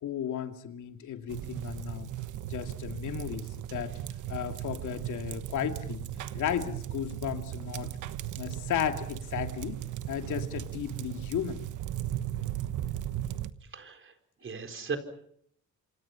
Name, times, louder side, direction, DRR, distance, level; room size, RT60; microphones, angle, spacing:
voice 1, 0.0-2.1 2.4-3.9 4.3-6.0 6.3-7.9 8.4-9.8 10.1-11.6, left 9 dB, 80° left, 6 dB, 2.6 m, -34 dB
sound 1, 1.3-13.5, right 12 dB, 85° right, 1.2 m, -37 dB
voice 2, 13.7-14.1 14.4-15.0, right 5 dB, 40° right, 6 dB, 4.4 m, -36 dB
27.0 x 27.0 x 5.8 m, 0.68 s
cardioid pair, 90°, 30 cm